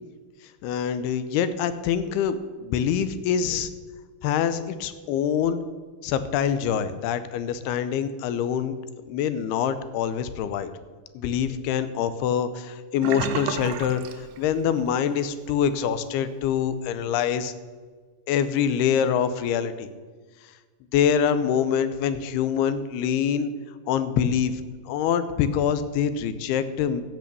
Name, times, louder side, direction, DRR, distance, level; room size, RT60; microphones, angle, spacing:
voice 1, 0.6-3.7 4.2-5.6 6.0-8.7 9.1-10.7 11.2-17.5 18.3-19.9 20.9-23.5 23.9-27.0, left 8 dB, 90° left, 13 dB, 2.7 m, -25 dB
Sink (filling or washing), 13.0-15.0 15.3-15.6 16.0-16.1, right 8 dB, 90° right, 2.8 m, -32 dB
12.5 x 8.6 x 6.8 m, 1.5 s
omnidirectional pair, 4.5 m